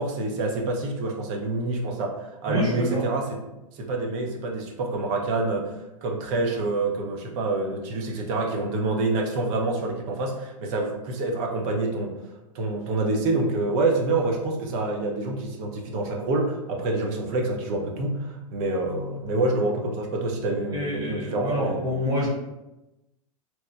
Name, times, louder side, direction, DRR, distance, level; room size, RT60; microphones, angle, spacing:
voice 1, 0.0-3.4 3.7-12.1 12.5-21.9, right 2 dB, 45° right, 1 dB, 0.6 m, -27 dB
voice 2, 2.5-3.0 20.7-22.3, equal, 20° right, -5 dB, 1.0 m, -27 dB
2.9 x 2.1 x 3.2 m, 0.96 s
hypercardioid pair, 100°, 19 cm